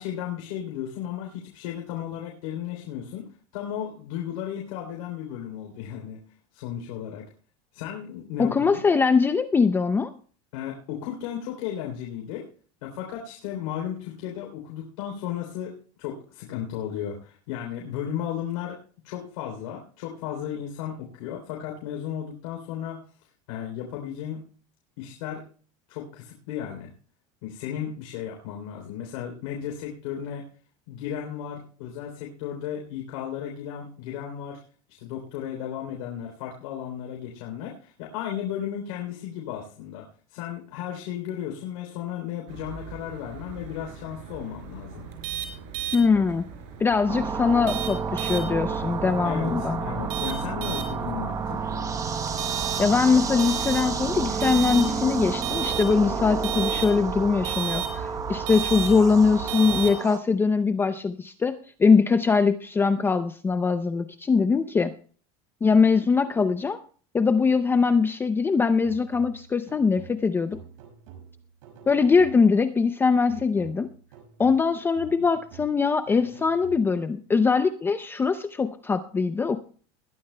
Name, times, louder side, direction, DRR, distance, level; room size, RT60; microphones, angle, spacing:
voice 1, 0.0-3.3 3.5-6.2 6.5-7.3 7.7-8.8 10.5-12.5 12.8-18.8 19.0-23.0 23.5-24.4 25.0-25.4 25.9-26.9 27.4-30.5 30.9-34.6 35.0-45.1 49.2-51.6, left 10 dB, 85° left, 1 dB, 3.3 m, -34 dB
voice 2, 8.4-10.1 45.9-46.4 46.8-49.8 52.8-64.9 65.6-66.8 67.1-70.6 71.9-73.9 74.4-79.6, left 5 dB, 15° left, 10 dB, 0.5 m, -22 dB
sound 1, 42.5-59.9, right 9 dB, 55° right, 4.7 m, -35 dB
sound 2, 47.1-60.2, right 5 dB, 20° right, 1.0 m, -30 dB
sound 3, 68.8-72.7 73.3-77.2, right 7 dB, 85° right, 5.6 m, -48 dB
20.5 x 13.0 x 2.2 m, 0.42 s
supercardioid pair, 150°, 17 cm